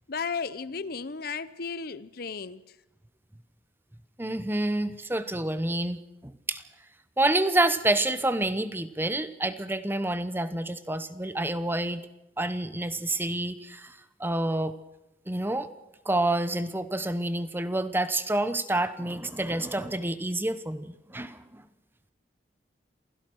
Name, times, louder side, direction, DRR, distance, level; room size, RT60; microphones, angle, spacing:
voice 1, 0.1-2.6, left 5 dB, 55° left, 0.7 m, -34 dB
voice 2, 4.2-6.6 7.2-12.0 12.4-14.7 15.3-15.7 16.1-21.6, right 1 dB, 10° right, 0.9 m, -28 dB
27.5 x 16.5 x 6.2 m
head